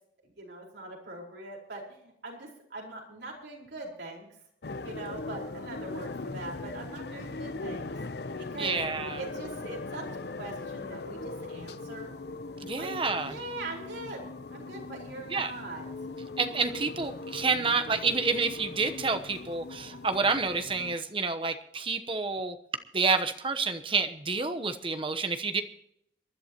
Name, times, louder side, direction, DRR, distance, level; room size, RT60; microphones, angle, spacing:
voice 1, 0.2-4.3 4.8-7.9 8.4-12.1 12.8-12.9 13.2-15.8 16.7-16.8, right 2 dB, 80° right, -2 dB, 4.6 m, -42 dB
sound 1, 4.6-21.0, left 3 dB, 65° left, 0.7 m, -40 dB
voice 2, 8.6-9.2 12.6-13.4 15.3-15.5 16.4-22.6 22.9-25.6, right 4 dB, 30° right, 8 dB, 1.0 m, -29 dB
27.0 x 11.0 x 3.0 m, 0.74 s
head